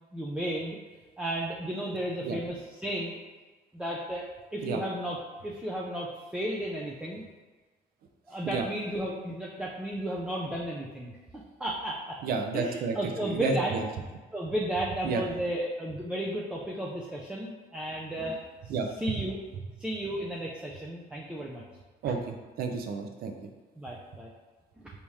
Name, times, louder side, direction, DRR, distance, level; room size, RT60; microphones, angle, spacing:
voice 1, 0.1-0.8 1.2-3.2 3.7-4.2 4.5-7.2 8.3-12.2 12.5-13.7 14.3-19.4 19.8-21.6 23.8-24.3 24.8-24.9, right 1 dB, 5° right, -3 dB, 0.4 m, -34 dB
voice 2, 12.2-13.0 13.2-13.9 15.0-15.2 18.7-18.9 22.0-23.3, right 4 dB, 65° right, 4 dB, 0.5 m, -31 dB
3.5 x 2.8 x 3.1 m, 1.3 s
cardioid pair, 110°, 17 cm